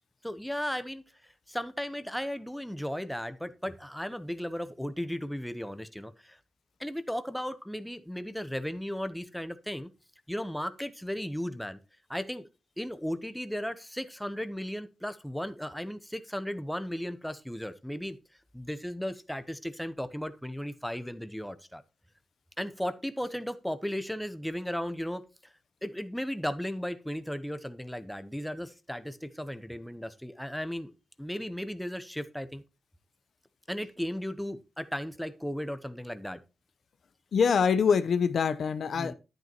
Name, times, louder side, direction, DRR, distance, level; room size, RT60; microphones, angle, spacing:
voice 1, 0.2-6.4 6.8-9.9 10.3-11.8 12.1-12.4 12.8-18.2 18.5-21.8 22.6-25.5 25.8-30.9 31.2-32.6 33.7-36.4 39.0-39.1, equal, 5° left, 0.9 m, -35 dB
voice 2, 37.3-39.1, left 6 dB, 65° left, 0.7 m, -24 dB
10.0 x 9.2 x 3.0 m
cardioid pair, 70°, 0 cm